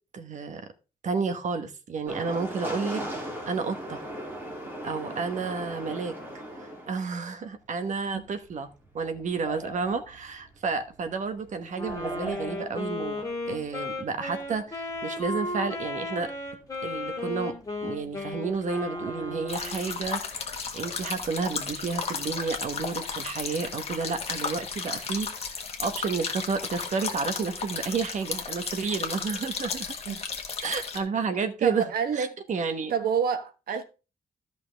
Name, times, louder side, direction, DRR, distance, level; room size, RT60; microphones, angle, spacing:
voice 1, 0.1-0.6 1.0-3.0 3.5-4.0 4.8-6.1 6.6-8.7 8.9-16.3 16.8-17.5 17.8-20.2 20.7-29.9 30.6-31.9 32.1-32.9, right 5 dB, 55° right, 1.1 m, -31 dB
sound 1, 2.1-7.0 7.8-21.0, right 1 dB, 15° right, 2.7 m, -41 dB
Wind instrument woodwind instrument, 11.7-20.0, left 2 dB, 25° left, 2.2 m, -35 dB
sound 2, 19.5-31.0, left 5 dB, 40° left, 1.5 m, -34 dB
voice 2, 31.6-32.4 32.9-33.8, right 7 dB, 85° right, 1.2 m, -28 dB
13.0 x 5.7 x 3.4 m
wide cardioid pair, 170°, 15 cm